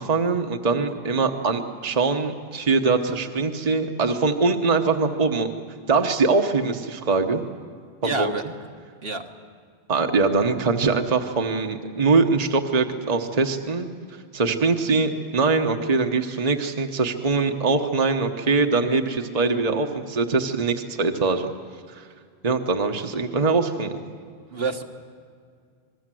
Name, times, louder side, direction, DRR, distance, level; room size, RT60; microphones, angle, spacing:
voice 1, 0.0-5.5 5.9-7.4 8.0-8.3 9.9-13.9 14.3-21.5 21.9-22.1 22.4-24.0, right 4 dB, 40° right, 5 dB, 1.2 m, -22 dB
voice 2, 8.0-8.5 9.0-9.3 24.5-24.8, right 3 dB, 65° right, 4 dB, 1.6 m, -28 dB
26.5 x 21.0 x 7.7 m, 2.1 s
omnidirectional pair, 1.1 m